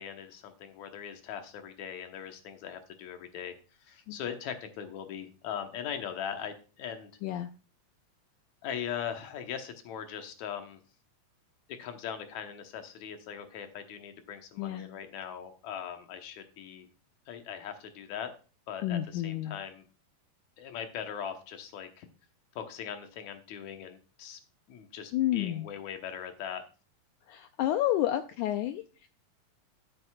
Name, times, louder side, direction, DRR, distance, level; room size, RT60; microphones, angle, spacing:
voice 1, 0.0-7.1 8.6-10.8 11.8-16.9 17.3-18.3 18.7-19.9 20.6-22.1 22.6-24.4 24.7-26.6, left 8 dB, 65° left, 6 dB, 2.1 m, -40 dB
voice 2, 14.6-14.9 18.8-19.6 25.1-25.7 27.3-29.1, left 13 dB, 85° left, 9 dB, 1.7 m, -30 dB
14.0 x 7.8 x 2.3 m, 0.35 s
omnidirectional pair, 4.1 m